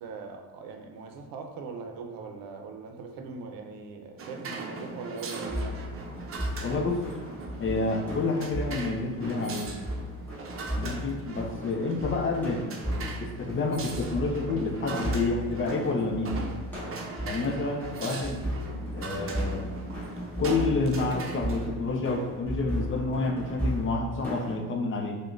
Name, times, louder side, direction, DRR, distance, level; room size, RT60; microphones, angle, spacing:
voice 1, 0.0-5.9, right 4 dB, 85° right, 4 dB, 0.5 m, -41 dB
sound 1, 4.2-21.7, right 3 dB, 40° right, 0.6 m, -39 dB
sound 2, 5.5-24.6, equal, 5° left, 1.4 m, -36 dB
voice 2, 6.6-7.0 7.6-9.7 10.8-16.4 17.2-18.4 18.9-19.9 20.4-25.2, left 3 dB, 35° left, 3 dB, 0.6 m, -29 dB
4.8 x 2.2 x 2.5 m, 1.3 s
cardioid pair, 90°, 34 cm